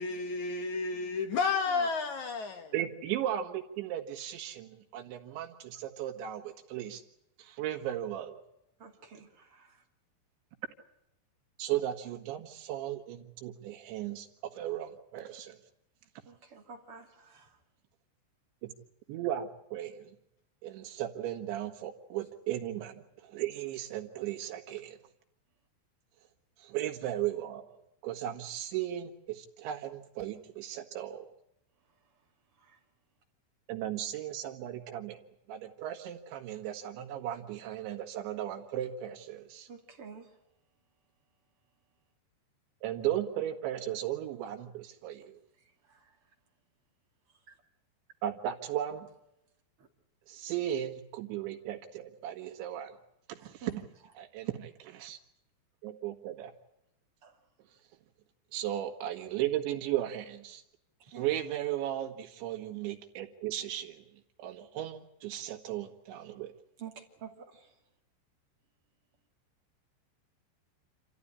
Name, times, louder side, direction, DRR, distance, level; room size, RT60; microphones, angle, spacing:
voice 1, 0.0-2.7, left 4 dB, 65° left, 1.9 m, -31 dB
voice 2, 2.7-7.0 7.4-8.4 11.6-14.3 14.6-15.6 18.6-18.7 19.1-20.2 20.6-25.0 26.6-27.8 28.0-31.3 33.7-35.2 35.5-39.7 42.8-45.4 48.2-49.1 50.3-52.9 53.3-53.7 54.2-55.2 55.8-56.5 58.5-60.6 61.2-64.0 64.4-66.5, right 12 dB, 85° right, 4.1 m, -36 dB
voice 3, 8.8-9.8 16.2-17.6 32.6-32.8 39.7-40.4 45.8-46.2 47.3-47.6 49.8-49.9 53.4-53.8 57.2-57.4 61.1-61.3 66.8-67.8, right 6 dB, 35° right, 3.0 m, -50 dB
27.5 x 14.5 x 9.9 m
omnidirectional pair, 5.1 m